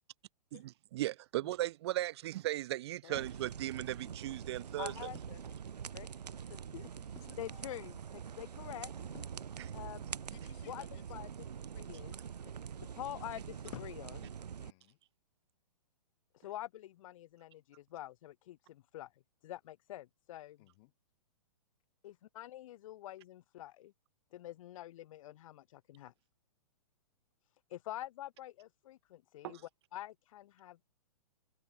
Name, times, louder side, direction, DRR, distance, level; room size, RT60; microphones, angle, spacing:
voice 1, 0.9-5.1 9.6-9.7 29.4-29.6, right 15 dB, 45° right, 0.4 m, -37 dB
sound 1, 3.1-14.7, right 7 dB, 90° right, 1.3 m, -45 dB
sound 2, 3.2-3.4 5.1-5.5 7.1-7.4 9.1-9.5, left 10 dB, 20° left, 2.0 m, -57 dB
voice 2, 4.8-5.4 5.9-6.1 6.5-7.1 7.4-9.3 9.7-10.2 10.7-11.3 11.8-12.5 12.8-14.3 16.3-20.6 22.0-23.9 24.3-26.1 27.7-29.6 29.9-30.8, left 14 dB, 55° left, 0.4 m, -47 dB
voice 3, 10.3-11.2 14.6-15.0 20.6-20.9, left 25 dB, 40° left, 4.2 m, -60 dB
hypercardioid pair, 140°, 20 cm